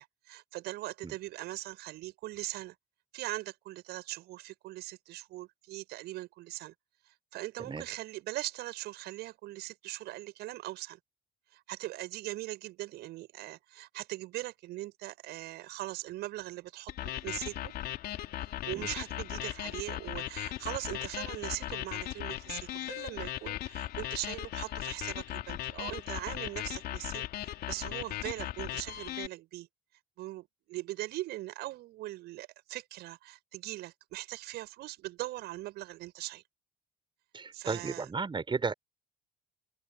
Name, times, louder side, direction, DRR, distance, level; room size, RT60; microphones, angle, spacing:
voice 1, 0.0-2.7 3.1-6.7 7.1-11.0 11.5-17.7 18.4-29.7 30.2-36.4 37.5-38.1, right 17 dB, 55° right, 6.3 m, -40 dB
sound 1, 16.9-29.3, left 13 dB, 50° left, 2.7 m, -38 dB
voice 2, 37.3-38.7, right 4 dB, 25° right, 4.9 m, -34 dB
figure-of-eight pair, 55°, 20 cm